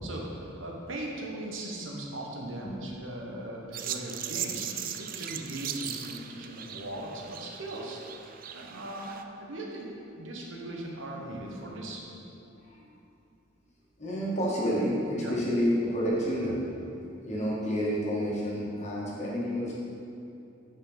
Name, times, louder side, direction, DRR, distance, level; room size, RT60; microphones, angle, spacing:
voice 1, 0.0-4.7 5.0-8.0 8.5-12.0 15.2-15.4, right 1 dB, 75° right, -1 dB, 1.3 m, -39 dB
sound 1, 3.7-9.2, right 9 dB, 45° right, 0.4 m, -38 dB
voice 2, 12.5-12.8 14.0-16.6 17.2-19.7, equal, 35° left, -6 dB, 1.9 m, -29 dB
9.9 x 5.7 x 4.0 m, 2.7 s
head